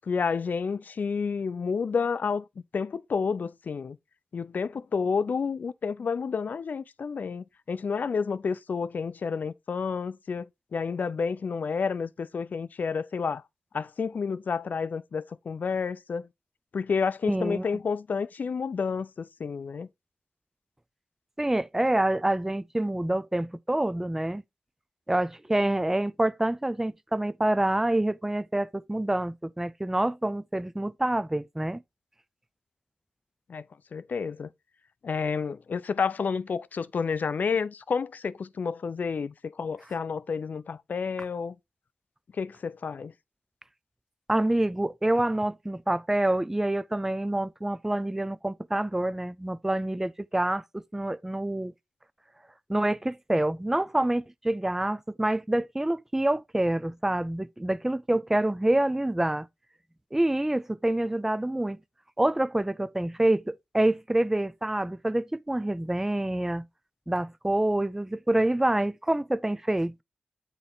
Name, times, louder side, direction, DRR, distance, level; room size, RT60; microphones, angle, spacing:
voice 1, 0.1-2.4 2.7-4.0 4.3-10.5 10.7-13.4 13.7-16.3 16.7-19.9 33.5-33.6 33.9-34.5 35.0-41.6 42.4-43.1, left 5 dB, 65° left, 0.4 m, -30 dB
voice 2, 17.3-17.6 21.4-24.4 25.1-31.8 44.3-51.7 52.7-59.5 60.1-61.8 62.2-66.7 67.1-70.0, right 1 dB, 10° right, 0.4 m, -27 dB
7.9 x 4.1 x 3.9 m
cardioid pair, 50°, 3 cm